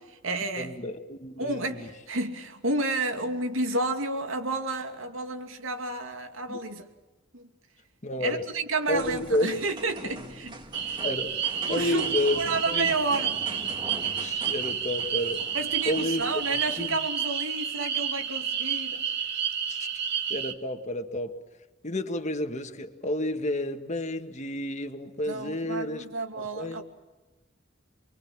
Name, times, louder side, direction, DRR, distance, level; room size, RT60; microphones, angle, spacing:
voice 1, 0.0-0.7 1.4-6.8 7.3-7.5 8.2-10.5 10.8-11.0 11.7-13.4 15.5-19.0 25.3-26.8, right 3 dB, 85° right, 2.7 m, -31 dB
voice 2, 0.6-1.9 6.5-6.6 8.0-8.4 8.9-9.5 11.0-12.4 12.7-12.9 14.2-15.4 15.9-16.2 16.8-17.0 19.7-19.9 20.3-21.3 21.8-26.1 26.4-26.8, left 1 dB, 35° left, 1.8 m, -30 dB
sound 1, 8.9-17.0, right 1 dB, 25° right, 2.4 m, -43 dB
sound 2, 10.7-20.5, right 8 dB, 60° right, 2.0 m, -30 dB
28.0 x 22.5 x 7.5 m
head